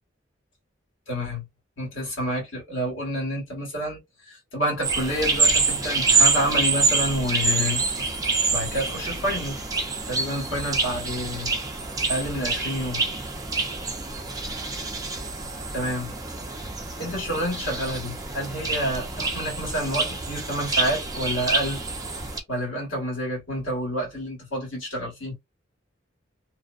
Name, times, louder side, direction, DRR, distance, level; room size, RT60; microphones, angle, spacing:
voice 1, 1.1-1.4 1.8-4.0 4.3-8.1 8.5-9.6 10.1-11.5 12.1-13.0 15.7-16.1 17.0-21.8 22.5-25.4, equal, 90° left, 1.5 m, -29 dB
sound 1, 4.8-22.4, right 4 dB, 20° right, 0.5 m, -26 dB
2.6 x 2.1 x 2.4 m
head